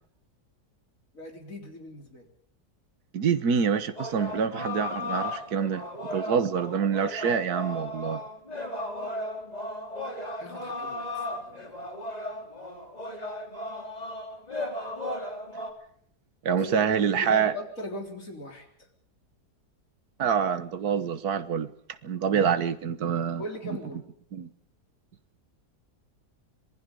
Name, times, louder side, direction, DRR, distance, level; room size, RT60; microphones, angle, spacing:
voice 1, 1.1-2.3 10.4-11.8 16.6-18.7 23.4-24.0, left 1 dB, 55° left, 3 dB, 4.2 m, -39 dB
voice 2, 3.1-5.9 6.1-8.2 16.4-17.5 20.2-21.7 22.0-23.8 24.3-24.5, right 7 dB, 70° right, 11 dB, 1.8 m, -26 dB
sound 1, 4.0-15.7, left 1 dB, 25° left, 3.1 m, -35 dB
26.0 x 20.0 x 5.3 m, 0.64 s
omnidirectional pair, 1.7 m